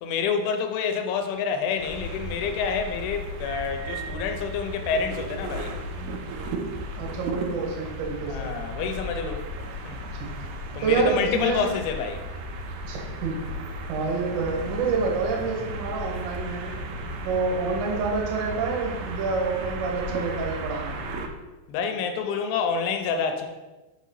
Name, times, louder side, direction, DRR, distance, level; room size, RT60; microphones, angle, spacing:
voice 1, 0.0-5.8 8.3-9.4 9.9-10.0 10.7-12.2 17.0-17.2 21.7-23.5, left 6 dB, 80° left, 5 dB, 2.8 m, -28 dB
sound 1, 1.8-21.3, right 1 dB, 85° right, 3.1 m, -35 dB
voice 2, 7.0-8.5 10.1-10.3 10.8-11.7 12.8-13.4 13.9-16.7 17.2-21.0, right 4 dB, 70° right, -1 dB, 3.3 m, -27 dB
7.3 x 4.1 x 5.4 m, 1.2 s
omnidirectional pair, 5.5 m